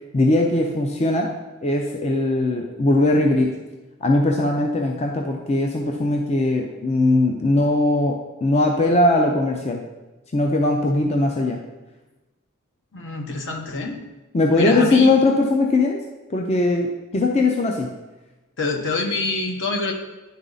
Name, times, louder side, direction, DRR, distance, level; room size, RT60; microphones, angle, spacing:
voice 1, 0.1-1.3 1.6-3.6 4.0-9.8 10.3-11.6 14.3-16.0 16.3-17.9, left 2 dB, 30° left, 1 dB, 0.6 m, -20 dB
voice 2, 12.9-14.0 14.5-15.1 18.6-19.9, left 3 dB, 60° left, 3 dB, 1.1 m, -26 dB
10.5 x 4.0 x 3.9 m, 1.1 s
head